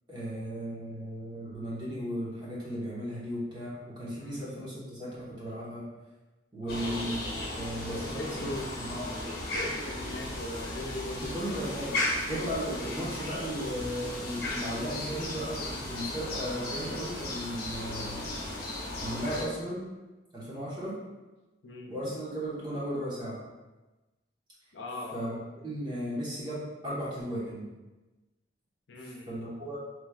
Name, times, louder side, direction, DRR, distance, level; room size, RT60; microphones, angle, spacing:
voice 1, 0.1-5.9 6.5-7.2 7.5-8.2 8.5-9.1 11.2-11.9 12.3-18.2 19.0-19.8 20.3-20.9 21.9-23.4 25.1-25.4 25.6-27.7 29.0-29.8, equal, 25° right, -8 dB, 1.2 m, -36 dB
voice 2, 4.2-4.6 6.6-7.1 7.9-8.7 9.2-11.6 11.9-12.1 21.6-21.9 24.7-25.2 28.9-29.4, left 1 dB, 75° left, 0 dB, 0.6 m, -40 dB
sound 1, 6.7-19.4, left 1 dB, 55° left, 1.0 m, -35 dB
4.9 x 3.2 x 2.4 m, 1.1 s
head